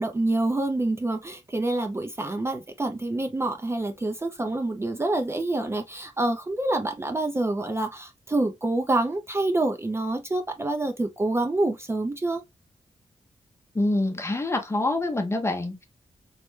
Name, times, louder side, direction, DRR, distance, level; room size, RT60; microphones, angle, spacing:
voice 1, 0.0-12.4, right 2 dB, 20° right, 0.4 m, -27 dB
voice 2, 13.7-15.9, left 2 dB, 20° left, 0.7 m, -26 dB
3.2 x 2.1 x 3.0 m
wide cardioid pair, 100°, 12 cm